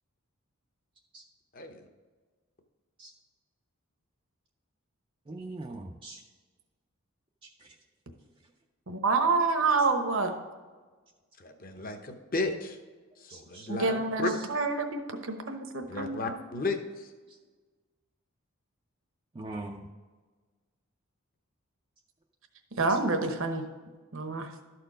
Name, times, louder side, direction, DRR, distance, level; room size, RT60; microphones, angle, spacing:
voice 1, 1.5-1.8 11.4-12.8 13.2-14.3 15.9-17.1, left 3 dB, 40° left, 6 dB, 0.8 m, -34 dB
voice 2, 5.3-6.2 7.4-7.7 13.3-13.7 14.3-14.4 19.3-19.9 22.9-23.0, right 2 dB, 25° right, 1 dB, 0.4 m, -42 dB
voice 3, 8.9-10.3 13.7-16.3 22.8-23.6 24.1-24.5, right 3 dB, 60° right, 5 dB, 1.0 m, -28 dB
12.5 x 4.4 x 5.0 m, 1.4 s
head